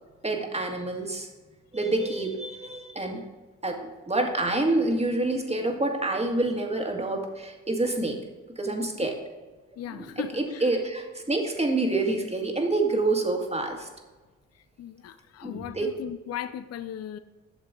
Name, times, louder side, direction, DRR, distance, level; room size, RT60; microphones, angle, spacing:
voice 1, 0.2-1.3 1.7-3.2 3.6-8.2 8.6-9.2 9.9-13.9 15.4-15.9, right 2 dB, 20° right, 2 dB, 1.9 m, -27 dB
voice 2, 9.8-10.7 14.8-17.2, left 10 dB, 45° left, 12 dB, 0.5 m, -37 dB
9.3 x 6.6 x 3.8 m, 1.2 s
supercardioid pair, 55°, 34 cm